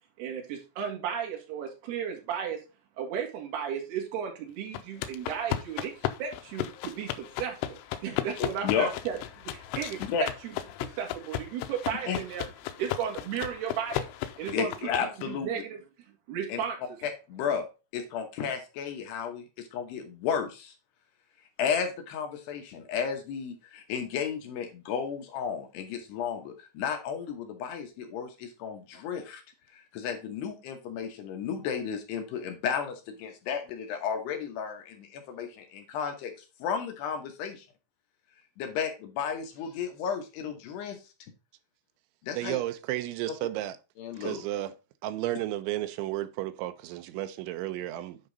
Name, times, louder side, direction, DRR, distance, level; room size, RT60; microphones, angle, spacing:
voice 1, 0.2-2.6 3.0-5.9 6.2-10.5 10.8-12.4 12.8-14.1 14.4-14.7 15.3-15.8 16.3-16.8, right 8 dB, 60° right, 3.7 m, -34 dB
sound 1, 4.7-15.2, left 12 dB, 85° left, 3.1 m, -35 dB
voice 2, 8.4-8.9 10.1-10.2 12.1-12.2 14.5-15.5 16.5-16.6 17.0-17.6 17.9-20.7 21.6-29.4 29.7-36.3 36.6-37.7 38.6-41.0 42.2-42.6 44.0-44.4, left 7 dB, 70° left, 2.9 m, -33 dB
voice 3, 42.3-43.8 44.2-44.7 45.0-48.2, right 15 dB, 80° right, 2.9 m, -33 dB
8.8 x 5.3 x 3.9 m
omnidirectional pair, 5.5 m